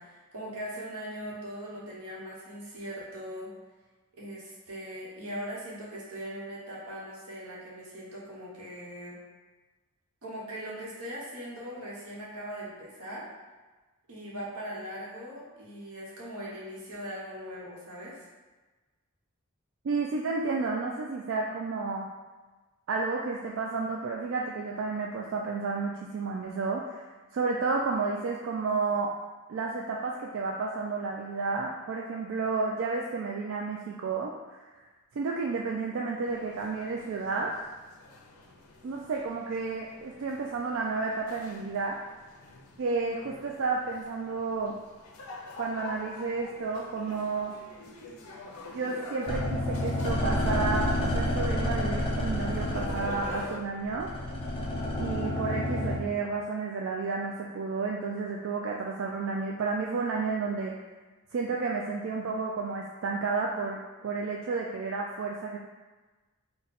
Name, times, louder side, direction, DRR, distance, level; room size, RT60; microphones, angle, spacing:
voice 1, 0.0-3.5 4.2-9.1 10.2-13.2 14.1-18.2, equal, 85° right, -5 dB, 1.1 m, -40 dB
voice 2, 19.8-22.1 22.9-29.1 29.5-34.6 35.1-37.5 38.8-42.0 42.8-44.7 45.6-47.5 48.7-54.1 55.0-60.7 61.3-65.6, right 4 dB, 60° right, -1 dB, 0.3 m, -31 dB
sound 1, 36.3-53.6, left 2 dB, 80° left, 0.6 m, -46 dB
sound 2, 49.3-56.0, left 1 dB, 25° left, 0.4 m, -29 dB
3.8 x 2.2 x 4.1 m, 1.3 s
head